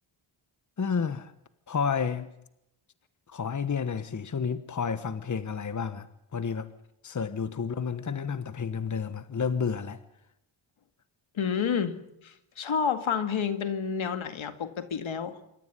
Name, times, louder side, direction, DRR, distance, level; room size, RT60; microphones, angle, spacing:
voice 1, 0.8-1.3 1.7-2.3 3.3-6.1 6.3-6.7 7.0-10.0, left 6 dB, 35° left, 1.2 m, -30 dB
voice 2, 11.3-12.0 12.2-15.4, left 7 dB, 70° left, 2.1 m, -29 dB
26.5 x 14.0 x 9.6 m
cardioid pair, 80°, 49 cm